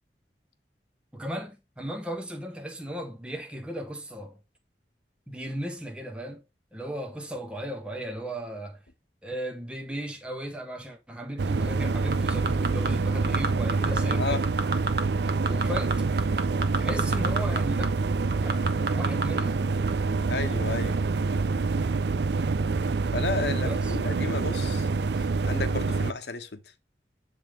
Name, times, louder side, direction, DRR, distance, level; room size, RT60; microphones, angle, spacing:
voice 1, 1.1-4.4 5.3-6.4 6.7-8.8 9.2-14.4 15.5-16.0 16.7-17.9 18.4-18.6 18.9-19.6 23.6-24.0, equal, 5° right, 1.4 m, -36 dB
sound 1, 11.4-26.1, right 3 dB, 70° right, 0.5 m, -26 dB
sound 2, 12.1-12.9 13.2-14.1 14.4-15.0 15.3-17.6 17.8-17.9 18.3-19.4 19.9-20.0, right 3 dB, 55° right, 1.1 m, -28 dB
voice 2, 20.3-21.0 23.1-24.9 25.2-26.6, left 3 dB, 70° left, 1.1 m, -32 dB
9.2 x 3.7 x 5.0 m
head